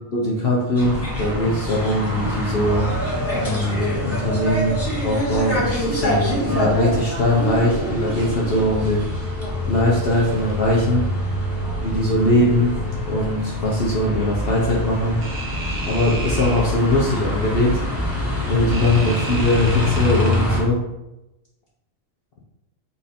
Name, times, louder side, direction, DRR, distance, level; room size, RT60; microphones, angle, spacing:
voice 1, 0.1-2.9 3.3-9.0 9.7-11.1 11.8-12.7 13.1-15.2 15.9-17.8 18.5-20.8, left 1 dB, 55° left, -3 dB, 0.8 m, -21 dB
sound 1, 0.8-20.6, left 1 dB, 10° left, 1.1 m, -25 dB
sound 2, 8.0-8.7 10.1-10.9 15.2-16.6 18.7-20.4, right 2 dB, 45° right, 0.7 m, -34 dB
4.1 x 2.6 x 4.1 m, 0.95 s
omnidirectional pair, 1.4 m